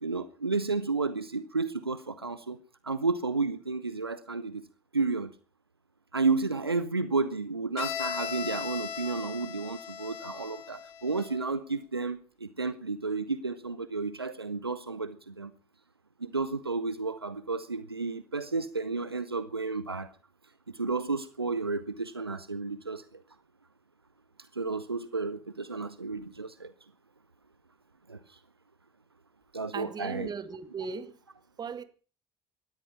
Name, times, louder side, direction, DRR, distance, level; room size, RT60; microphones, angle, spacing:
voice 1, 0.0-2.6 2.8-4.6 4.9-5.3 6.1-15.5 16.2-20.1 20.7-23.2 24.5-26.7 28.1-28.4 29.5-30.3, right 4 dB, 85° right, 0.8 m, -32 dB
Bowed string instrument, 7.8-11.5, left 8 dB, 55° left, 2.7 m, -38 dB
voice 2, 29.7-31.1 31.6-31.8, right 5 dB, 35° right, 2.3 m, -37 dB
18.5 x 13.5 x 5.7 m
figure-of-eight pair, 55°, 13 cm